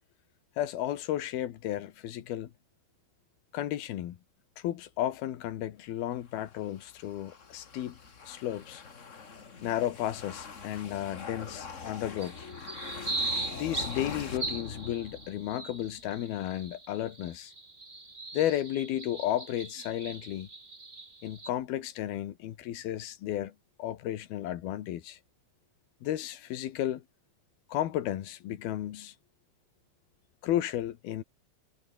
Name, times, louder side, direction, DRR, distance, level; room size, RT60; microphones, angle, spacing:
voice 1, 0.6-2.5 3.5-4.2 4.6-8.8 9.6-12.5 13.5-17.5 18.3-20.5 21.2-25.2 26.0-27.0 27.7-29.1 30.4-31.2, left 12 dB, 80° left, 3.4 m, -33 dB
sound 1, 6.3-15.7, left 5 dB, 50° left, 0.9 m, -43 dB
sound 2, 12.2-21.5, right 3 dB, 15° right, 2.2 m, -39 dB
omnidirectional pair, 4.3 m